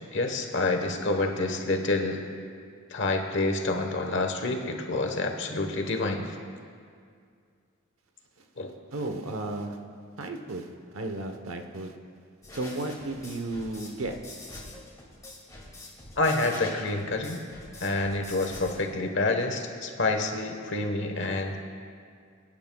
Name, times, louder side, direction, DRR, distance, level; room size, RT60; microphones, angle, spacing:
voice 1, 0.1-2.2 2.9-6.3 8.6-8.7 16.2-17.4 17.8-21.6, left 2 dB, 60° left, 4 dB, 1.2 m, -28 dB
voice 2, 8.9-9.8 10.2-12.0 12.5-14.2, right 2 dB, 90° right, 5 dB, 1.0 m, -34 dB
sound 1, 12.4-18.8, left 2 dB, 15° left, 2.3 m, -44 dB
23.5 x 10.0 x 2.3 m, 2.2 s
head